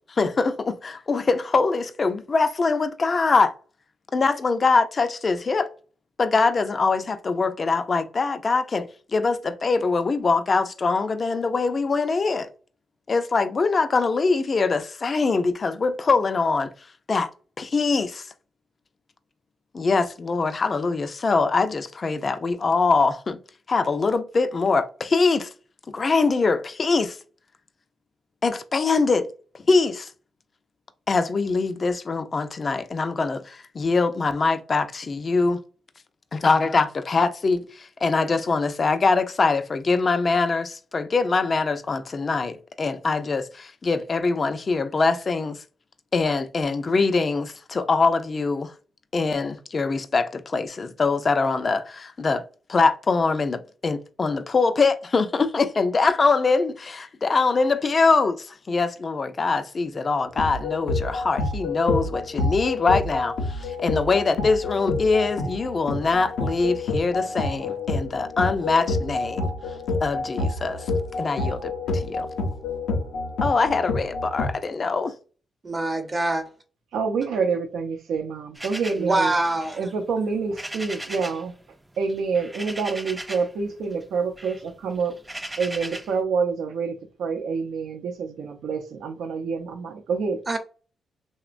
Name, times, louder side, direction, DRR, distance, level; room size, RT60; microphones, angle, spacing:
voice 1, 0.1-3.5 4.1-5.7 6.2-12.5 13.1-16.7 17.1-17.3 17.6-18.3 19.7-23.4 23.7-25.5 25.9-27.2 28.4-29.3 29.7-30.1 31.1-35.6 36.3-45.6 46.1-48.7 49.1-52.4 52.7-69.5 70.0-70.9 71.2-72.3 73.4-75.1, left 4 dB, 45° left, 0.4 m, -23 dB
sound 1, 60.4-74.5, left 3 dB, 90° left, 0.6 m, -28 dB
voice 2, 75.6-76.4 79.0-79.8 90.5-90.6, right 2 dB, 35° right, 0.8 m, -24 dB
voice 3, 76.9-79.3 79.8-81.5 82.0-85.1 85.6-90.4, right 5 dB, 80° right, 0.6 m, -27 dB
sound 2, 78.5-81.5 81.8-83.6 83.9-86.2, right 1 dB, 15° right, 0.4 m, -38 dB
3.0 x 2.1 x 2.5 m
supercardioid pair, 60°, 0 cm